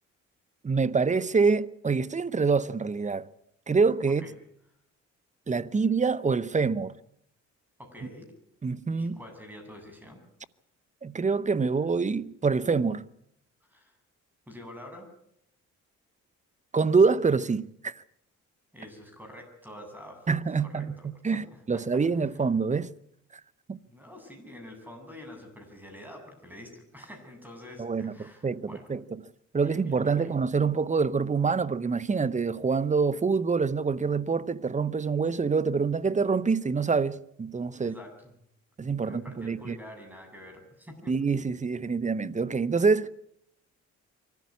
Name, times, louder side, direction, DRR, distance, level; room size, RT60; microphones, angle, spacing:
voice 1, 0.6-3.2 3.7-4.2 5.5-6.9 8.6-9.2 11.0-13.0 16.7-18.0 20.3-20.9 21.2-22.9 23.7-23.8 27.8-29.0 29.5-37.9 38.8-39.8 41.1-43.1, right 4 dB, 25° right, 0.9 m, -26 dB
voice 2, 7.8-8.3 9.0-10.2 13.6-13.9 14.5-15.1 18.7-20.3 20.6-22.0 23.9-29.0 29.6-30.3 37.7-38.3 39.0-41.1, left 1 dB, 5° right, 7.6 m, -47 dB
24.0 x 14.0 x 9.5 m
cardioid pair, 90°, 30 cm